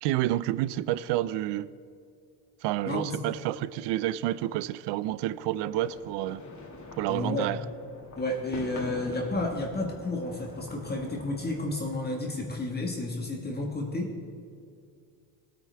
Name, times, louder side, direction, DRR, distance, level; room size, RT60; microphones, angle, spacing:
voice 1, 0.0-1.7 2.6-6.4 7.0-7.6, right 14 dB, 65° right, 0.5 m, -29 dB
sound 1, 5.7-11.8, left 3 dB, 40° left, 2.3 m, -44 dB
voice 2, 7.1-7.5 8.2-14.1, left 2 dB, 20° left, 1.6 m, -31 dB
19.0 x 9.1 x 3.5 m
cardioid pair, 105°, 46 cm